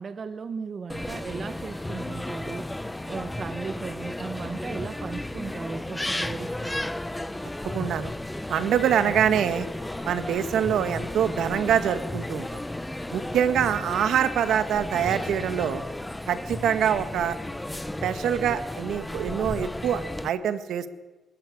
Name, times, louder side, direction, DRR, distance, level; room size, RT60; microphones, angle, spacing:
voice 1, 0.0-2.7 3.1-6.9 13.5-13.9, right 5 dB, 45° right, 11 dB, 1.1 m, -36 dB
sound 1, 0.9-20.3, left 1 dB, 10° left, 0.9 m, -34 dB
voice 2, 7.7-8.1 8.5-9.7 10.0-12.5 13.1-15.8 16.3-17.4 18.0-20.9, right 9 dB, 75° right, 11 dB, 1.6 m, -25 dB
23.0 x 13.5 x 9.7 m, 1.2 s
cardioid pair, 90°, 0 cm